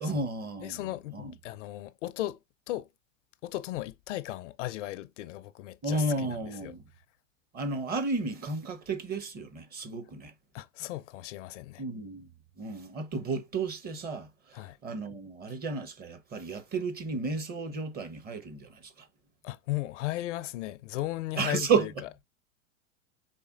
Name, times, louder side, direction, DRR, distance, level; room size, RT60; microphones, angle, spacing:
voice 1, 0.0-0.8 1.1-1.3 5.8-6.8 7.5-10.3 11.8-12.3 12.6-19.1 21.4-21.9, right 3 dB, 25° right, 0.8 m, -32 dB
voice 2, 0.6-2.4 2.7-2.9 3.4-6.7 10.5-11.8 14.5-14.8 19.4-21.9, left 16 dB, 65° left, 0.5 m, -36 dB
4.2 x 3.4 x 2.4 m
hypercardioid pair, 110°, 39 cm